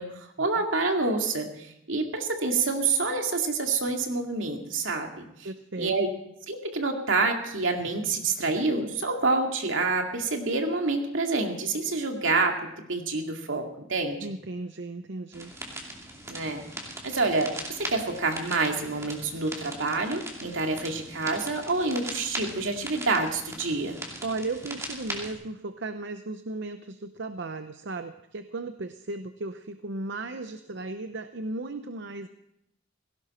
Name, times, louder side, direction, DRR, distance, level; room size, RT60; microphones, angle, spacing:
voice 1, 0.0-5.2 5.8-6.1 6.5-14.3 16.3-16.6 17.0-24.0, right 3 dB, 80° right, 3 dB, 2.3 m, -27 dB
voice 2, 5.4-5.9 14.2-15.5 24.2-32.3, right 2 dB, 65° right, 9 dB, 0.7 m, -35 dB
sound 1, 15.3-25.3, right 1 dB, 15° right, 2.5 m, -40 dB
17.5 x 17.0 x 4.3 m, 0.79 s
head